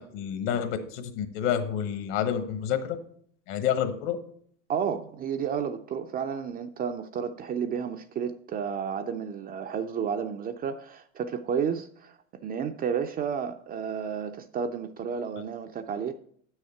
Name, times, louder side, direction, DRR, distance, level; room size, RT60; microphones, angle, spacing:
voice 1, 0.1-3.0 3.5-4.2, left 9 dB, 60° left, 9 dB, 1.3 m, -28 dB
voice 2, 4.7-12.2 12.4-16.1, right 7 dB, 25° right, 7 dB, 0.4 m, -31 dB
8.2 x 6.4 x 4.5 m, 0.62 s
supercardioid pair, 110°, 38 cm